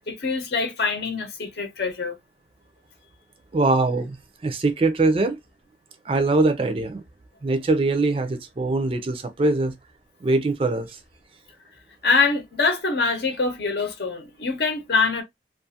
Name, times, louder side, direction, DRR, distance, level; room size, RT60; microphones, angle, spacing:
voice 1, 0.1-2.2 12.0-15.2, left 4 dB, 70° left, 0.8 m, -24 dB
voice 2, 3.5-4.2 4.4-5.4 6.1-7.0 7.4-9.7 10.2-11.0, right 2 dB, 30° right, 0.4 m, -22 dB
2.4 x 2.4 x 2.6 m
head